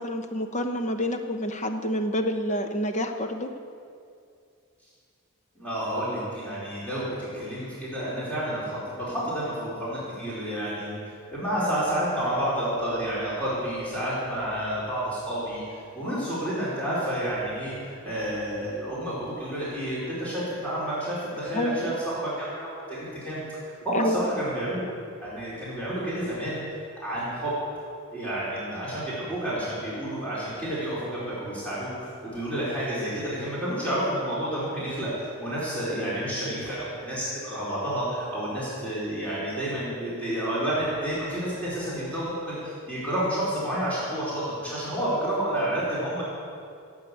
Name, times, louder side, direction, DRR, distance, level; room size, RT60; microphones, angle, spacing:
voice 1, 0.0-3.5 21.5-22.0 23.9-24.3, left 1 dB, 35° left, 6 dB, 1.0 m, -28 dB
voice 2, 5.5-7.1 7.3-8.8 9.1-10.9 11.3-24.8 25.2-26.6 27.0-27.5 28.1-46.2, right 1 dB, 5° left, -9 dB, 4.3 m, -30 dB
16.0 x 8.2 x 8.3 m, 2.4 s
head